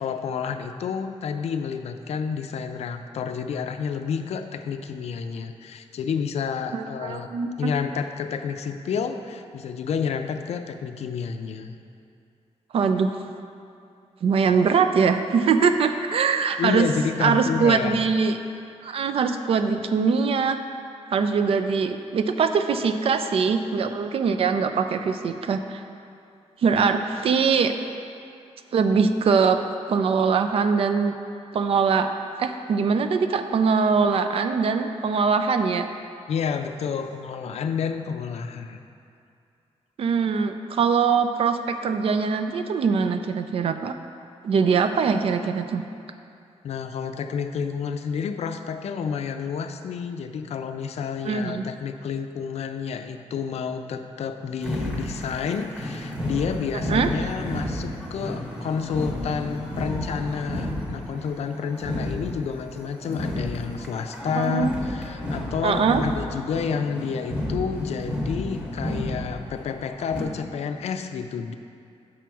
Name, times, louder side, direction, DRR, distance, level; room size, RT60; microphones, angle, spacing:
voice 1, 0.0-7.3 7.6-11.8 16.6-18.0 36.3-38.8 46.6-71.6, left 6 dB, 70° left, 7 dB, 0.4 m, -30 dB
voice 2, 6.7-7.7 12.7-13.1 14.2-16.9 17.2-18.4 18.8-20.6 21.1-25.8 26.6-27.7 28.7-29.6 29.9-31.1 31.5-32.1 32.4-35.9 40.0-43.9 44.4-45.8 51.3-51.6 56.9-57.1 64.4-64.7 65.6-66.0, right 5 dB, 55° right, 8 dB, 0.4 m, -22 dB
sound 1, 54.6-70.2, left 1 dB, 10° right, 1.1 m, -32 dB
6.1 x 6.0 x 4.5 m, 2.5 s
wide cardioid pair, 165°, 11 cm